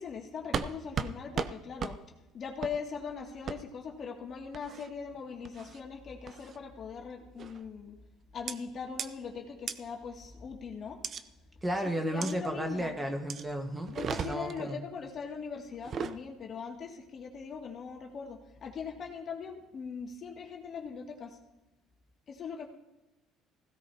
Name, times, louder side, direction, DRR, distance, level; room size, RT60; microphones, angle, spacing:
voice 1, 0.0-7.9 8.3-11.1 12.0-13.0 13.9-21.4 22.3-22.7, left 6 dB, 45° left, 1 dB, 2.4 m, -40 dB
sound 1, 0.5-0.7 1.0-1.1 1.4-1.5 1.8-1.9 2.6-2.8 3.5-3.6 4.5-4.9 5.4-5.8 6.3-6.6 7.4-7.7 8.5-8.6 9.0-9.1 9.7-9.8 11.0-11.2 12.2-12.3 13.3-13.4 13.9-14.6 15.7-16.2, right 6 dB, 45° right, 0.7 m, -35 dB
voice 2, 11.6-13.9 14.2-14.8, right 1 dB, 15° right, 4 dB, 1.5 m, -33 dB
16.5 x 15.5 x 2.9 m, 0.98 s
supercardioid pair, 100°, 0 cm